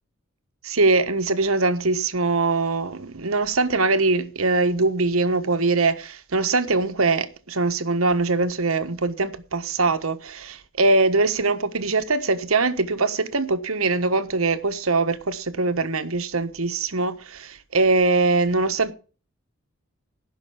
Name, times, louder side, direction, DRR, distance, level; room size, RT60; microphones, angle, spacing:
voice 1, 0.6-18.9, right 3 dB, 85° right, 1.3 m, -22 dB
15.5 x 6.0 x 5.9 m
head